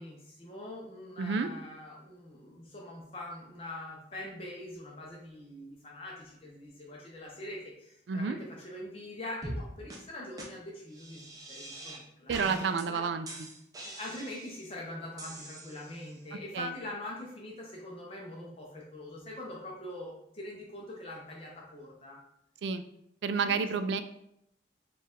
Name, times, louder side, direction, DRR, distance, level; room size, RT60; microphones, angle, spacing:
voice 1, 0.0-13.0 13.8-22.2 23.4-23.7, left 1 dB, 30° left, -3 dB, 0.6 m, -43 dB
voice 2, 1.2-1.5 8.1-8.4 12.3-13.3 16.5-16.7 22.6-22.8 23.2-24.0, right 5 dB, 85° right, 10 dB, 0.3 m, -30 dB
sound 1, 9.4-9.6 9.9-10.0 10.4-10.5 10.9-12.0 12.3-12.8 13.3-14.7 15.2-16.1, right 1 dB, 20° right, 0.5 m, -43 dB
4.4 x 2.4 x 3.6 m, 0.77 s
head